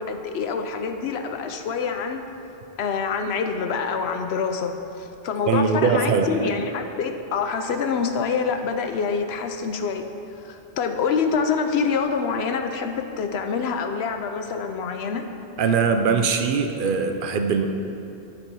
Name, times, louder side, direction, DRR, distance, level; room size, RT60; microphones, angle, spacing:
voice 1, 0.0-2.2 2.8-10.1 10.4-15.3, left 5 dB, 75° left, 6 dB, 0.8 m, -26 dB
voice 2, 5.5-6.5 15.6-17.7, right 5 dB, 60° right, 6 dB, 0.7 m, -21 dB
9.6 x 4.7 x 5.3 m, 2.8 s
omnidirectional pair, 1.1 m